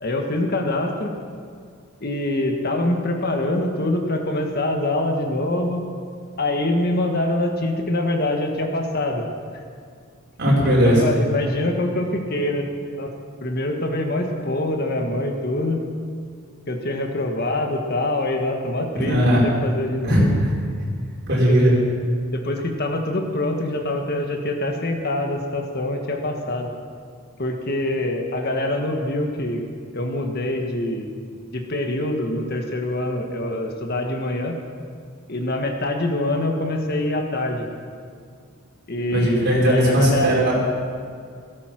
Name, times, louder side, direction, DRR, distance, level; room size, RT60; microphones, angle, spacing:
voice 1, 0.0-1.1 2.0-5.8 6.4-9.2 9.5-9.6 10.6-12.6 13.0-13.1 13.4-15.8 16.7-20.4 21.5-21.6 22.3-26.7 27.4-29.6 29.9-31.1 31.5-34.5 35.3-37.7 38.9-40.3, left 1 dB, 50° left, 3 dB, 1.7 m, -24 dB
voice 2, 10.4-11.0 18.9-19.4 20.0-20.5 21.3-21.8 39.1-40.5, equal, 50° right, -5 dB, 5.5 m, -18 dB
17.0 x 14.0 x 6.1 m, 2.2 s
head